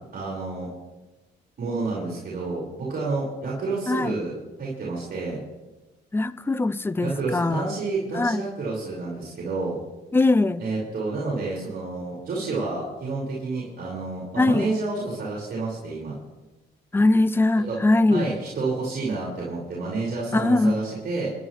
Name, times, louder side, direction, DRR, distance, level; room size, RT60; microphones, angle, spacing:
voice 1, 0.1-0.7 1.6-4.3 4.6-5.4 7.0-9.8 10.6-16.1 17.7-17.8 18.1-21.3, right 3 dB, 50° right, -6 dB, 5.2 m, -29 dB
voice 2, 3.9-4.2 6.1-7.7 8.1-8.4 10.1-10.6 14.4-14.7 16.9-18.3 20.3-20.8, left 2 dB, 10° left, 16 dB, 0.6 m, -21 dB
27.5 x 11.0 x 3.3 m, 1.1 s
cardioid pair, 90°, 20 cm